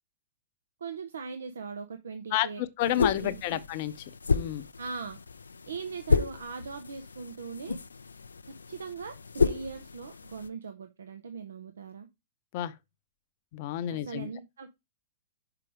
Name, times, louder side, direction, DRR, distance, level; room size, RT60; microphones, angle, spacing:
voice 1, 0.8-3.6 4.8-5.2 5.7-7.8 8.7-12.1 13.9-14.7, right 5 dB, 75° right, 0.7 m, -40 dB
voice 2, 2.3-3.9 4.3-4.6 12.5-12.7 13.5-14.3, left 13 dB, 50° left, 0.7 m, -30 dB
sound 1, 2.8-10.5, left 4 dB, 85° left, 0.4 m, -31 dB
5.8 x 4.8 x 5.0 m
figure-of-eight pair, 105°, 0 cm